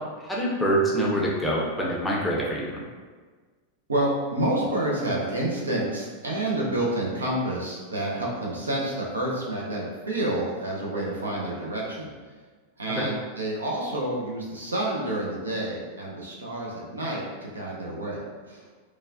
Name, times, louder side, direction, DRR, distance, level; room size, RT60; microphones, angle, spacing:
voice 1, 0.2-2.8 12.9-13.1, right 1 dB, 5° left, -5 dB, 0.6 m, -25 dB
voice 2, 3.9-12.1 12.8-18.6, right 1 dB, 75° right, -3 dB, 0.5 m, -29 dB
3.1 x 2.3 x 2.4 m, 1.5 s
figure-of-eight pair, 90°, 0 cm